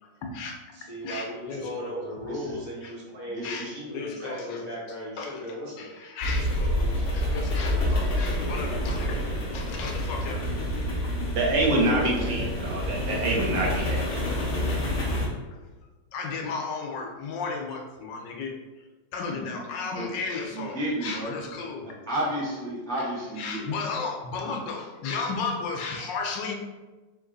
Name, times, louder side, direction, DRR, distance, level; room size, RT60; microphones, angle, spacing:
voice 1, 0.2-0.6 1.0-2.1 2.8-2.9 3.4-4.6 5.2-9.2 9.5-10.7 11.6-11.9 16.1-18.5 19.1-21.9 23.4-26.5, left 4 dB, 75° left, 2 dB, 1.3 m, -34 dB
voice 2, 0.7-5.9, equal, 50° right, -5 dB, 1.4 m, -37 dB
voice 3, 2.3-2.6 3.3-3.8 9.0-9.3 11.7-12.5 13.0-13.5 19.3-20.1 20.5-21.4 21.8-23.7 24.4-24.6, right 1 dB, 5° left, -6 dB, 0.4 m, -33 dB
sound 1, 6.2-15.3, left 1 dB, 50° left, 0.7 m, -28 dB
voice 4, 11.3-14.0, right 2 dB, 85° right, -2 dB, 1.7 m, -26 dB
4.1 x 2.9 x 3.9 m, 1.2 s
omnidirectional pair, 2.0 m